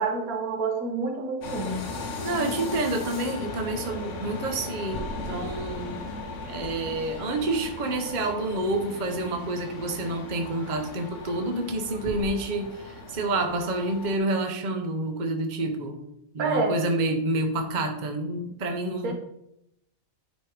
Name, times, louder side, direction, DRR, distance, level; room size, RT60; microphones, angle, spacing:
voice 1, 0.0-1.8 16.4-16.8 19.0-19.1, right 4 dB, 90° right, 3 dB, 1.6 m, -28 dB
sound 1, 1.4-14.2, left 3 dB, 60° left, 1.2 m, -37 dB
voice 2, 2.0-6.0 6.5-16.0 16.3-19.1, right 2 dB, 35° right, 4 dB, 0.9 m, -28 dB
sound 2, 4.9-9.3 12.0-12.3, equal, 30° left, 0.9 m, -42 dB
9.2 x 3.1 x 5.0 m, 0.80 s
omnidirectional pair, 1.5 m